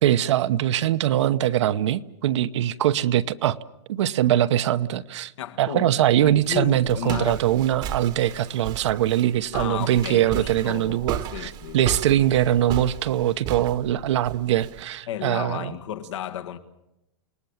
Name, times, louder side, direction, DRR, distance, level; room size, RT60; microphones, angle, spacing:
voice 1, 0.0-3.6 3.9-5.3 5.6-15.8, right 12 dB, 75° right, 0.9 m, -22 dB
voice 2, 5.4-5.9 6.2-7.4 9.5-11.8 15.1-16.6, left 10 dB, 80° left, 1.8 m, -33 dB
Walk footsteps, 6.2-14.8, right 10 dB, 30° right, 1.0 m, -35 dB
29.0 x 19.0 x 7.2 m
supercardioid pair, 160°, 15 cm